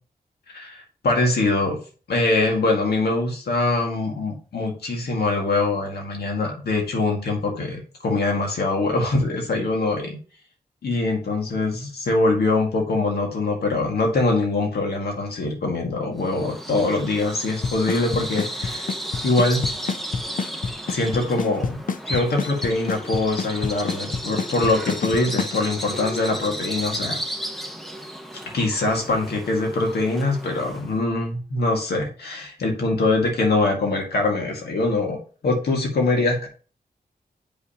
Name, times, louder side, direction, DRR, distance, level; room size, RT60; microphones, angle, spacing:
voice 1, 0.5-1.8 2.1-10.2 10.8-18.9 19.2-19.6 20.9-21.8 22.1-27.2 28.5-36.5, left 2 dB, 90° left, 1 dB, 1.9 m, -23 dB
Bird vocalization bird call bird song, 16.2-31.0, equal, ahead, 1.0 m, -34 dB
Drum kit / Snare drum / Bass drum, 17.6-25.6, left 5 dB, 55° left, 0.5 m, -26 dB
7.9 x 5.6 x 2.9 m, 0.38 s
cardioid pair, 65°, 16 cm